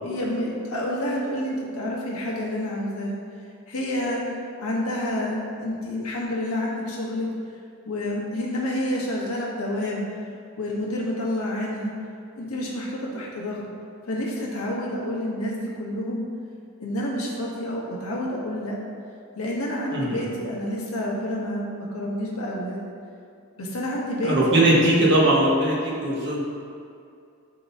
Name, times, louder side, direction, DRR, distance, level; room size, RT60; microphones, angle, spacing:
voice 1, 0.0-3.2 3.7-4.2 4.6-7.3 7.8-10.1 10.6-11.9 12.3-13.6 14.1-16.2 16.8-18.8 19.3-22.8 23.6-24.7, left 1 dB, 85° left, -3 dB, 1.3 m, -29 dB
voice 2, 19.9-20.2 24.2-26.4, right 1 dB, 55° right, -5 dB, 1.5 m, -20 dB
11.5 x 3.9 x 2.8 m, 2.4 s
head